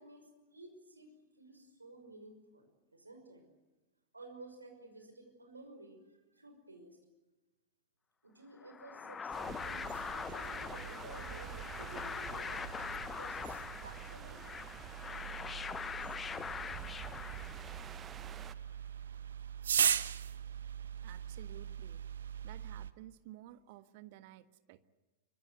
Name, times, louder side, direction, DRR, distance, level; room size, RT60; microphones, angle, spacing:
voice 1, 0.0-3.4 4.1-7.0 8.2-12.7 13.1-14.4, right 2 dB, 80° right, 5 dB, 5.8 m, -54 dB
sound 1, 8.6-18.0, left 6 dB, 20° left, 0.9 m, -43 dB
sound 2, 9.3-18.6, right 8 dB, 25° right, 0.8 m, -50 dB
sound 3, 9.5-22.9, right 8 dB, 65° right, 0.9 m, -40 dB
voice 2, 21.0-22.0 22.4-24.9, right 15 dB, 50° right, 12 dB, 1.4 m, -53 dB
25.5 x 24.0 x 8.1 m, 1.1 s
figure-of-eight pair, 90°, 0 cm